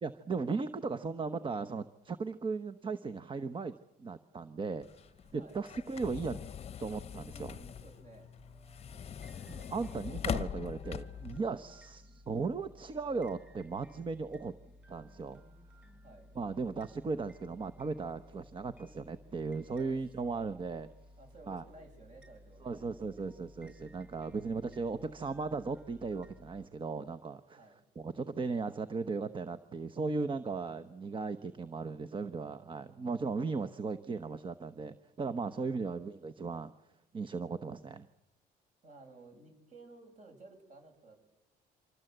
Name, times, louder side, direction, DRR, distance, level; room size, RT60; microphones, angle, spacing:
voice 1, 0.0-4.9 5.3-6.4 6.8-7.6 9.5-14.5 14.9-15.4 16.3-20.9 21.5-21.6 22.6-27.6 28.0-36.7 37.1-38.1, right 4 dB, 30° right, 10 dB, 0.9 m, -37 dB
sound 1, 4.8-11.4, left 8 dB, 40° left, 0.9 m, -41 dB
voice 2, 5.2-5.6 7.3-8.3 11.7-11.8 16.0-16.3 19.8-20.0 21.2-22.9 27.5-27.9 35.6-35.8 38.8-41.2, right 2 dB, 45° right, 5 dB, 7.5 m, -55 dB
sound 2, 8.4-26.6, left 1 dB, 10° right, 6.9 m, -57 dB
26.0 x 25.5 x 7.9 m, 0.95 s
cardioid pair, 110°, 17 cm